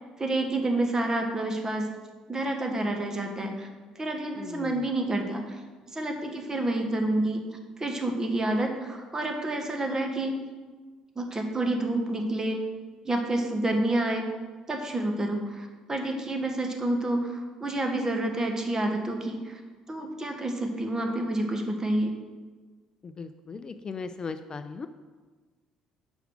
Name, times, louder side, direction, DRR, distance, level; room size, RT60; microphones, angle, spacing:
voice 1, 0.2-1.9 2.3-3.7 4.0-5.4 5.9-7.4 7.8-10.4 11.1-12.6 13.0-14.2 14.7-19.6 19.9-22.1, right 1 dB, 25° right, 3 dB, 1.4 m, -28 dB
voice 2, 4.4-4.9 23.0-24.9, left 4 dB, 35° left, 10 dB, 0.4 m, -38 dB
6.2 x 4.9 x 6.2 m, 1.4 s
hypercardioid pair, 60°, 2 cm